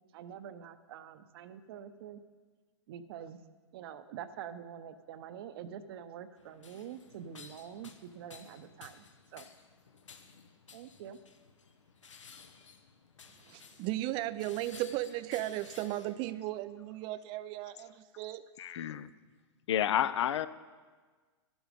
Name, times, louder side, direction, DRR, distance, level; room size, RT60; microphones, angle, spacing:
voice 1, 0.1-2.2 2.9-3.4 3.7-9.1 9.3-9.5 10.7-11.2, right 9 dB, 55° right, 12 dB, 0.8 m, -46 dB
sound 1, 6.4-16.1, left 5 dB, 85° left, 1.1 m, -55 dB
voice 2, 13.3-18.5, right 15 dB, 30° right, 15 dB, 0.4 m, -36 dB
voice 3, 18.6-19.1 19.7-20.5, left 10 dB, 70° left, 16 dB, 0.6 m, -30 dB
11.5 x 11.5 x 5.2 m, 1.4 s
hypercardioid pair, 120°, 15 cm